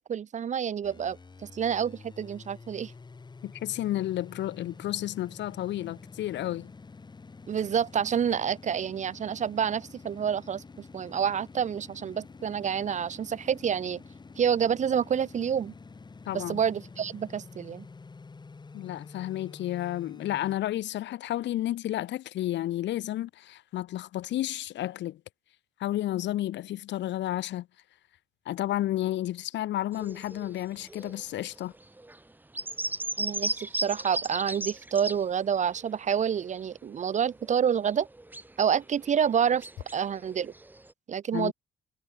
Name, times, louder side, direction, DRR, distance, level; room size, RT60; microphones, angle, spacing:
voice 1, 0.0-2.9 7.5-14.0 14.4-15.7 16.3-17.8 33.2-38.1 38.6-39.7 39.9-40.5 41.1-41.5, right 8 dB, 40° right, 0.4 m, -28 dB
sound 1, 0.8-20.6, left 4 dB, 20° left, 0.9 m, -48 dB
voice 2, 3.4-6.7 16.3-16.6 18.7-25.2 25.8-27.7 28.5-31.7 41.3-41.5, left 14 dB, 65° left, 0.5 m, -31 dB
sound 2, 29.9-35.4 35.7-40.9, right 2 dB, 10° right, 0.9 m, -37 dB
cardioid pair, 90°, 20 cm